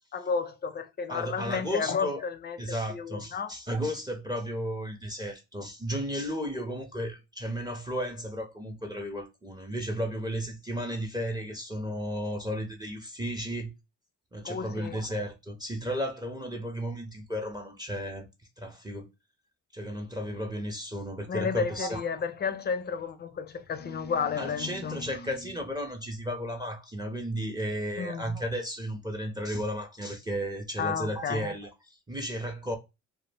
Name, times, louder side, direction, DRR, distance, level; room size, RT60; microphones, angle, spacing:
voice 1, 0.1-3.5 14.4-15.0 21.3-25.4 28.0-28.4 30.8-31.5, left 6 dB, 35° left, 0.4 m, -32 dB
voice 2, 1.1-2.3 2.6-13.7 14.3-18.3 18.6-19.1 19.7-22.0 24.4-32.8, equal, 15° right, 0.5 m, -34 dB
2.2 x 2.0 x 3.2 m
cardioid pair, 90°, 30 cm